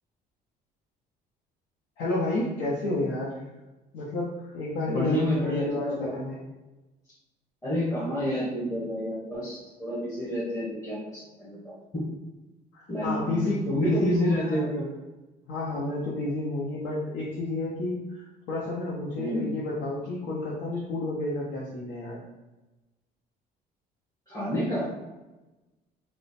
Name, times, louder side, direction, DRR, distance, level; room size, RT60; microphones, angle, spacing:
voice 1, 2.0-3.4 3.9-6.5 12.7-14.7 15.5-22.2, left 2 dB, 90° left, -5 dB, 0.7 m, -30 dB
voice 2, 4.9-6.1 7.6-12.0 12.9-13.4 13.6-14.9 19.1-19.5 24.3-24.9, equal, 20° left, -8 dB, 1.2 m, -29 dB
3.0 x 2.1 x 4.1 m, 1.1 s
cardioid pair, 110°, 17 cm